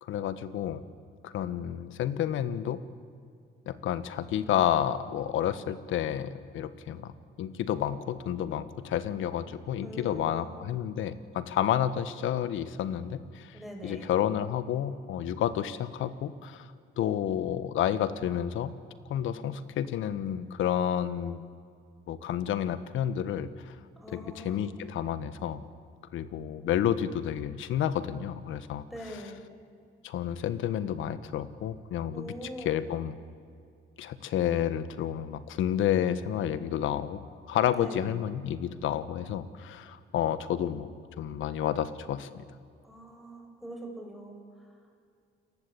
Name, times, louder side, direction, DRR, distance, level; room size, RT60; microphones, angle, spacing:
voice 1, 0.0-0.8 1.2-2.8 3.7-16.7 17.0-18.7 19.1-21.4 22.1-23.8 24.1-25.6 26.1-28.8 30.0-32.3 32.6-33.2 34.0-40.9 41.2-42.4, left 10 dB, 85° left, 13 dB, 1.4 m, -30 dB
voice 2, 9.8-10.5 13.5-14.1 24.0-24.7 28.9-29.4 32.1-32.8 37.8-38.1 42.8-44.8, equal, ahead, 1 dB, 7.4 m, -43 dB
29.0 x 19.5 x 8.6 m, 2.3 s
cardioid pair, 90°, 20 cm